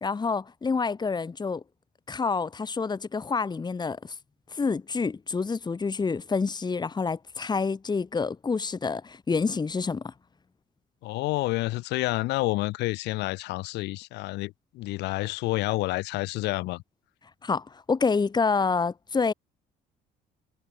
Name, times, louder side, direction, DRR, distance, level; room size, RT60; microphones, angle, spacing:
voice 1, 0.0-1.6 2.1-4.0 4.5-10.1 17.4-19.3, left 4 dB, 25° left, 3.2 m, -27 dB
voice 2, 11.0-16.8, left 20 dB, 90° left, 5.3 m, -29 dB
cardioid pair, 110°, 17 cm